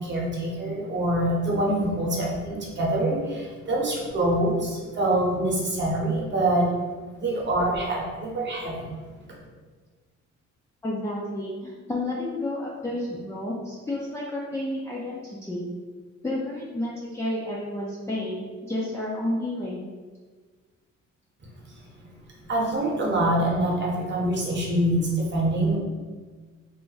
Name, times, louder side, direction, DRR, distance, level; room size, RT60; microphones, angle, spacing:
voice 1, 0.0-6.7 7.1-8.9 21.7-22.1 22.4-25.8, right 1 dB, 35° right, -3 dB, 1.0 m, -25 dB
voice 2, 10.8-15.7 16.2-19.8, left 1 dB, 10° left, -7 dB, 0.4 m, -31 dB
2.5 x 2.2 x 3.9 m, 1.4 s
cardioid pair, 90°, 30 cm